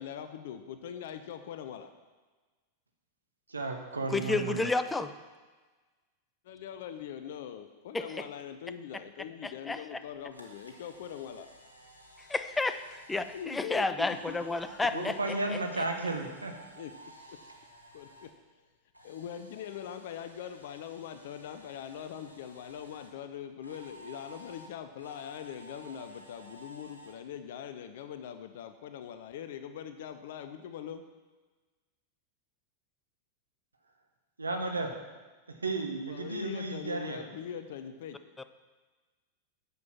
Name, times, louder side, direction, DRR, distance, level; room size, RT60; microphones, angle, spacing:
voice 1, 0.0-1.9 6.4-11.5 13.3-14.4 14.9-15.1 16.8-16.9 17.3-17.4 17.9-18.6 19.0-31.0 35.9-38.2, left 9 dB, 55° left, 9 dB, 0.6 m, -42 dB
voice 2, 3.5-4.7 14.9-16.6 34.4-35.0 35.5-37.2, right 2 dB, 80° right, 4 dB, 1.2 m, -33 dB
voice 3, 4.1-5.1 7.9-8.0 9.4-9.8 12.2-15.1, left 3 dB, 10° left, 11 dB, 0.6 m, -31 dB
Camera, 10.0-18.3 18.6-23.1 23.6-27.1, right 1 dB, 85° left, 1.4 m, -54 dB
9.5 x 7.0 x 6.0 m, 1.3 s
figure-of-eight pair, 90°, 0 cm